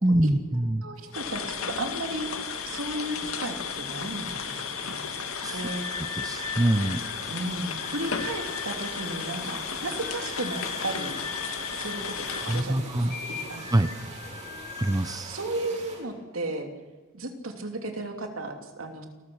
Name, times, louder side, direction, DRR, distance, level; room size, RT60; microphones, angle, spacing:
voice 1, 0.0-0.8 5.4-5.6 6.2-7.0 12.5-13.2 13.7-13.9 14.8-15.3, right 1 dB, 20° right, 10 dB, 0.7 m, -24 dB
voice 2, 0.8-2.3 2.6-5.3 5.5-5.8 7.3-11.2 11.7-13.7 15.2-16.7 17.1-19.1, right 2 dB, 75° right, 4 dB, 2.9 m, -34 dB
sound 1, 1.0-16.0, right 3 dB, 35° right, 7.9 m, -45 dB
sound 2, 1.1-12.6, left 6 dB, 80° left, 2.1 m, -34 dB
sound 3, 5.4-15.1, left 4 dB, 50° left, 5.3 m, -41 dB
28.5 x 14.5 x 6.4 m, 1.4 s
head